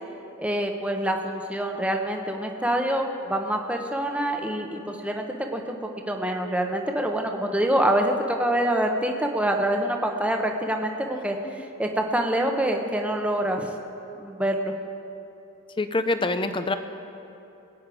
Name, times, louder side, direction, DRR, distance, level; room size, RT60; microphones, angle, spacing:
voice 1, 0.4-5.3 5.5-5.8 6.1-13.7 14.2-14.7, right 1 dB, 5° right, 3 dB, 0.9 m, -26 dB
voice 2, 11.1-11.5 15.8-16.8, left 2 dB, 20° left, 10 dB, 0.6 m, -26 dB
21.0 x 9.4 x 4.9 m, 2.9 s
head